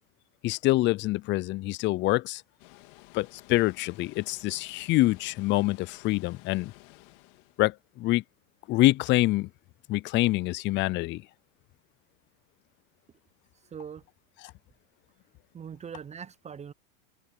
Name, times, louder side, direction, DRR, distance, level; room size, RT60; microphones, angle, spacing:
voice 1, 0.4-2.4 3.1-6.7 7.6-8.2 8.7-9.5 9.9-11.2, left 18 dB, 30° left, 0.4 m, -25 dB
Water, 2.6-7.6, left 26 dB, 60° left, 3.6 m, -54 dB
voice 2, 13.7-14.0 15.5-16.7, right 7 dB, 15° right, 0.6 m, -41 dB
open air
hypercardioid pair, 110°, 40 cm